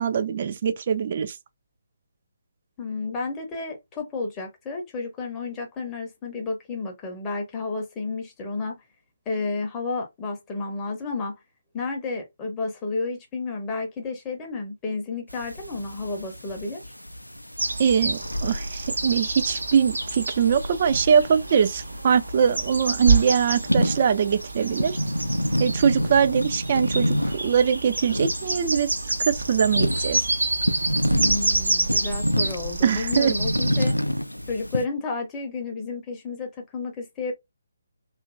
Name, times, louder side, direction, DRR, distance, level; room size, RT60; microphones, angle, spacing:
voice 1, 0.0-1.4 17.8-25.0 25.6-28.9 29.2-30.3 32.8-33.4, right 7 dB, 35° right, 0.3 m, -22 dB
voice 2, 2.8-8.8 9.3-11.4 11.7-16.8 31.1-33.9 34.5-37.3, left 3 dB, 15° left, 0.6 m, -31 dB
sound 1, 15.3-34.9, equal, 90° left, 0.3 m, -29 dB
sound 2, 17.6-33.9, right 2 dB, 70° right, 0.9 m, -28 dB
2.8 x 2.5 x 2.4 m
figure-of-eight pair, 145°, 0 cm